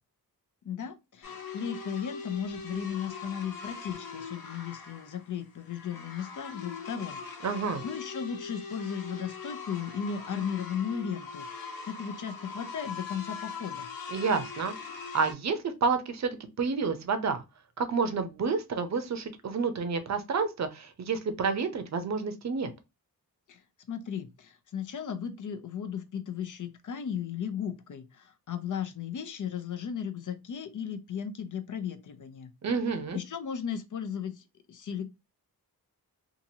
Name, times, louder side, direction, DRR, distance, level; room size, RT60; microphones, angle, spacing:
voice 1, 0.6-7.5 7.8-13.9 23.5-23.6 23.9-32.5 33.1-35.0, left 7 dB, 55° left, 0.5 m, -36 dB
sound 1, 1.2-15.3, left 5 dB, 70° left, 1.1 m, -41 dB
voice 2, 7.4-7.8 14.1-17.4 17.8-22.7 32.6-33.2, right 5 dB, 50° right, 0.7 m, -29 dB
2.9 x 2.5 x 2.7 m
wide cardioid pair, 140°, 37 cm